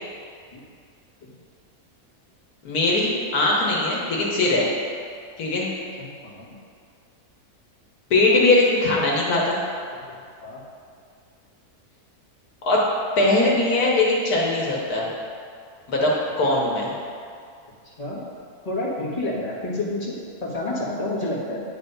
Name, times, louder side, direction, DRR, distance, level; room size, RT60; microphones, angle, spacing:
voice 1, 2.6-4.7 5.4-5.7 8.1-9.6 12.6-12.8 13.2-15.1 15.9-16.1 16.4-16.9, left 2 dB, 75° left, -3 dB, 1.6 m, -20 dB
voice 2, 6.0-6.5 10.4-10.6 18.0-18.2 18.6-21.6, left 2 dB, 25° left, -7 dB, 1.5 m, -29 dB
9.3 x 3.4 x 5.4 m, 2.2 s
omnidirectional pair, 1.6 m